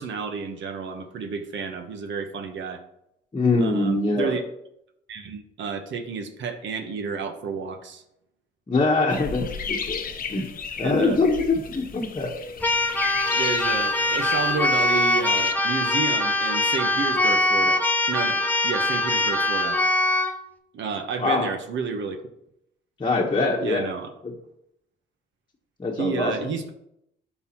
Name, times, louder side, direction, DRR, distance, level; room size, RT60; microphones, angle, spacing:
voice 1, 0.0-2.8 3.6-4.4 5.1-8.0 10.8-11.2 13.3-17.8 18.1-19.8 20.7-22.2 23.6-24.1 26.0-26.7, right 5 dB, 70° right, 6 dB, 1.1 m, -30 dB
voice 2, 3.3-4.3 8.7-10.0 10.3-10.5 10.8-12.3 21.2-21.5 23.0-23.9 24.2-24.3 25.8-26.3, left 3 dB, 25° left, -3 dB, 1.2 m, -23 dB
sound 1, 9.1-15.5, left 6 dB, 45° left, 0.8 m, -34 dB
Keyboard (musical), 12.6-20.4, left 2 dB, 10° left, 0.9 m, -22 dB
11.5 x 4.0 x 3.0 m, 0.78 s
cardioid pair, 90°, 20 cm